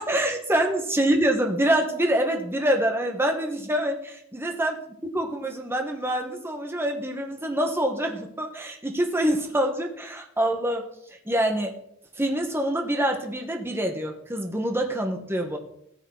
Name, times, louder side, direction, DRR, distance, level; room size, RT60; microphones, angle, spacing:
voice 1, 0.0-4.8 5.1-10.8 11.2-11.7 12.2-15.6, right 1 dB, 10° right, 2 dB, 1.6 m, -25 dB
18.0 x 7.1 x 4.1 m, 0.73 s
head